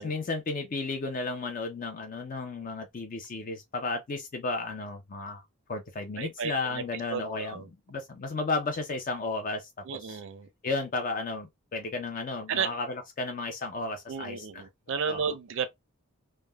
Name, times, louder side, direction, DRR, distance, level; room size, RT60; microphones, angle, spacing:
voice 1, 0.0-5.4 5.7-7.6 7.9-10.2 10.6-14.6 15.1-15.4, left 3 dB, 35° left, 0.4 m, -33 dB
voice 2, 6.2-6.8 7.1-7.7 9.9-10.5 12.5-12.7 14.1-15.7, right 6 dB, 55° right, 0.4 m, -33 dB
3.3 x 2.0 x 2.2 m
head